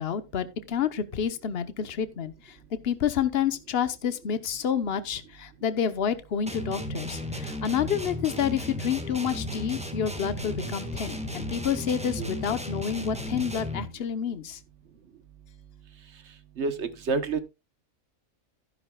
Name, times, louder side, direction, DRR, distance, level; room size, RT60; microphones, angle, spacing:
voice 1, 0.0-2.6 2.8-14.6, left 8 dB, 50° left, 1.1 m, -29 dB
sound 1, 6.5-14.0, left 1 dB, 5° right, 1.4 m, -34 dB
voice 2, 16.6-17.4, right 4 dB, 55° right, 1.2 m, -28 dB
12.0 x 10.5 x 2.3 m
omnidirectional pair, 1.5 m